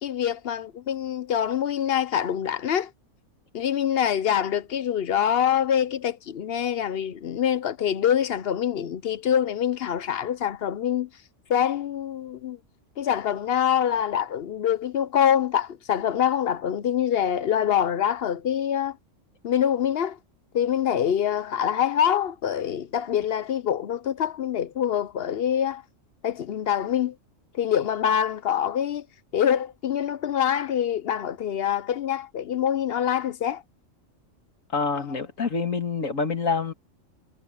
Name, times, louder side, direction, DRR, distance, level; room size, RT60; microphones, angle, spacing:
voice 1, 0.0-2.9 3.5-11.1 11.5-12.6 13.0-19.0 19.4-20.2 20.5-25.8 26.2-27.1 27.5-29.1 29.3-33.6 35.0-35.1, left 9 dB, 60° left, 0.8 m, -25 dB
voice 2, 34.7-36.7, left 4 dB, 80° left, 2.6 m, -26 dB
omnidirectional pair, 1.3 m